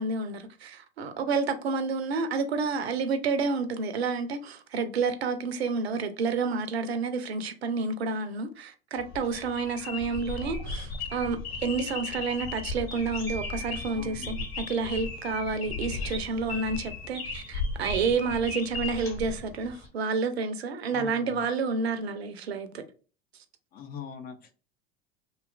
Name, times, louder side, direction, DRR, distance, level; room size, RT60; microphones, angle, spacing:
voice 1, 0.0-14.3 14.7-22.8, right 4 dB, 85° right, 0.5 m, -29 dB
sound 1, 9.0-19.9, left 3 dB, 80° left, 1.0 m, -36 dB
sound 2, 13.3-15.4, right 3 dB, 10° left, 0.9 m, -44 dB
voice 2, 13.9-14.5 20.9-21.5 23.7-24.6, left 7 dB, 30° left, 0.4 m, -42 dB
2.8 x 2.3 x 2.3 m
hypercardioid pair, 85°, 31 cm